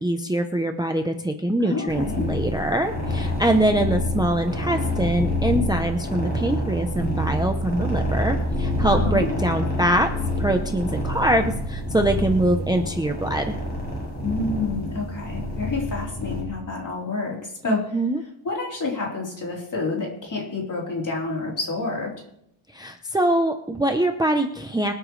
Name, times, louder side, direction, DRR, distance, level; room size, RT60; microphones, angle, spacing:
voice 1, 0.0-10.1 10.4-13.6 17.7-18.2 22.7-24.9, right 1 dB, 10° right, 5 dB, 0.7 m, -23 dB
voice 2, 1.6-2.2 8.9-9.3 14.2-17.9 18.4-22.1, left 3 dB, 40° left, -3 dB, 3.9 m, -28 dB
sound 1, 1.9-16.4, left 1 dB, 20° left, 6.3 m, -27 dB
24.5 x 9.1 x 3.3 m, 0.75 s
wide cardioid pair, 170°, 49 cm